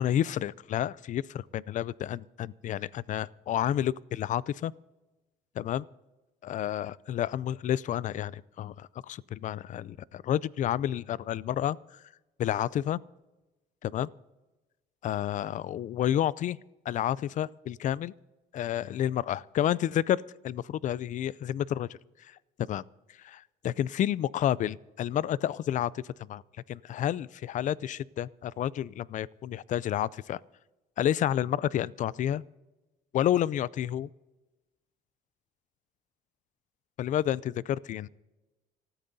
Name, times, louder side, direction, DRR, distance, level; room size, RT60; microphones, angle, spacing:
voice 1, 0.0-4.7 5.6-5.8 6.4-12.0 12.4-13.0 13.8-14.1 15.0-16.6 16.9-18.1 18.5-21.9 22.2-22.4 22.7-22.8 23.2-26.4 26.7-30.4 31.0-32.4 33.1-34.1 37.0-38.1, left 11 dB, 50° left, 22 dB, 0.4 m, -30 dB
27.0 x 14.0 x 2.7 m, 1.1 s
cardioid pair, 110°, 17 cm